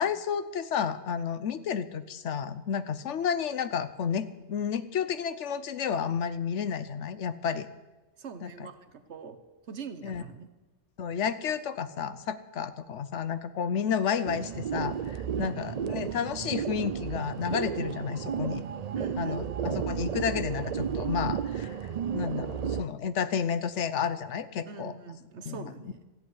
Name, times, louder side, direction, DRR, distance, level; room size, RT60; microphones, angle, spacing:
voice 1, 0.0-7.7 8.4-8.7 10.0-10.2 11.0-18.6 19.2-24.9 25.5-25.9, left 7 dB, 80° left, 13 dB, 1.1 m, -31 dB
voice 2, 8.2-9.4 9.7-10.5 15.4-15.6 18.9-19.5 24.7-26.0, right 5 dB, 75° right, 10 dB, 1.4 m, -43 dB
sound 1, 14.2-22.8, right 8 dB, 50° right, 0.5 m, -33 dB
14.5 x 8.0 x 9.7 m, 1.1 s
omnidirectional pair, 1.2 m